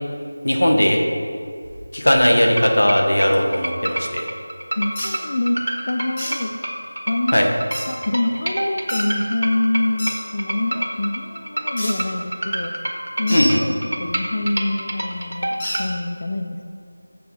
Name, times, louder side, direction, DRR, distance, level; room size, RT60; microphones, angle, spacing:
voice 1, 0.4-1.0 1.9-4.3 7.3-7.5 13.3-13.6, equal, 85° left, 2 dB, 1.6 m, -17 dB
sound 1, 2.1-15.9, right 1 dB, 75° right, 1.6 m, -27 dB
voice 2, 4.8-6.5 7.1-7.4 7.9-12.7 13.2-16.7, left 1 dB, 45° left, 4 dB, 0.5 m, -25 dB
sound 2, 4.9-5.1 6.2-6.3 7.7-7.9 8.9-9.0 10.0-10.1 11.8-11.9 13.3-13.5 15.6-15.8, equal, 20° left, 1.7 m, -27 dB
8.3 x 6.8 x 4.9 m, 2.3 s
figure-of-eight pair, 175°, 0 cm